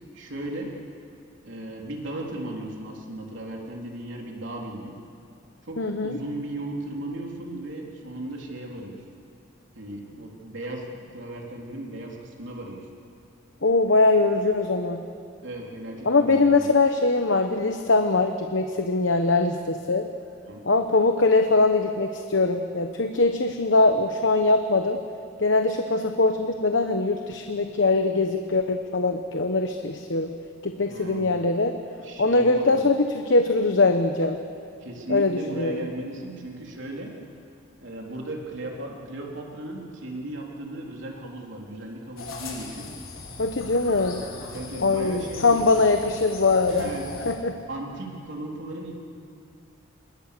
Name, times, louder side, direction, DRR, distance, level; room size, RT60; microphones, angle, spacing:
voice 1, 0.1-0.7 1.4-5.0 5.6-9.0 9.7-12.9 15.4-16.7 20.5-20.7 30.9-31.5 32.0-32.9 34.8-37.1 37.8-42.9 44.5-45.7 46.7-47.1 47.7-49.0, right 1 dB, 60° right, -1 dB, 3.6 m, -36 dB
voice 2, 5.8-6.2 13.6-15.0 16.0-20.1 20.6-25.0 25.4-30.3 30.6-31.8 32.2-34.4 35.1-35.8 43.4-44.2 44.8-46.9 47.3-47.6, left 3 dB, 60° left, 6 dB, 1.0 m, -22 dB
sound 1, 42.2-47.3, left 3 dB, 75° left, 5.3 m, -39 dB
27.0 x 22.5 x 6.8 m, 2.5 s
head